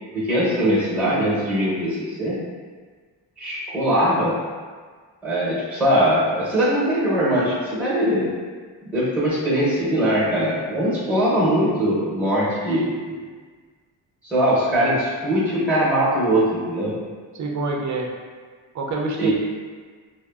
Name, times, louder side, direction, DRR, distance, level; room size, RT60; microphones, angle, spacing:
voice 1, 0.1-2.4 3.4-4.4 5.2-8.3 8.8-13.2 14.2-17.0 19.2-19.3, equal, 5° right, -8 dB, 0.8 m, -21 dB
voice 2, 17.3-18.1 18.7-19.3, right 3 dB, 45° right, 1 dB, 0.4 m, -26 dB
3.3 x 2.0 x 2.3 m, 1.5 s
cardioid pair, 95°, 44 cm